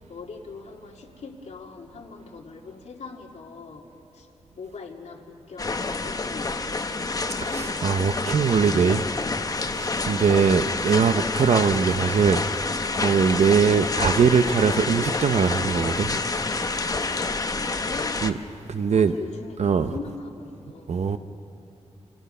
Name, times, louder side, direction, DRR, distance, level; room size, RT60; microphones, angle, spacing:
voice 1, 0.1-3.8 4.1-4.3 4.6-6.8 17.1-18.2 18.9-20.9, left 4 dB, 70° left, 2.3 m, -41 dB
sound 1, 5.6-18.3, left 3 dB, 30° left, 0.9 m, -28 dB
voice 2, 7.4-9.0 9.6-12.4 13.0-16.2 16.7-17.2 18.2-18.3 18.7-19.1 19.6-19.9 20.9-21.2, right 6 dB, 65° right, 0.7 m, -21 dB
29.0 x 26.5 x 5.5 m
wide cardioid pair, 140°, 12 cm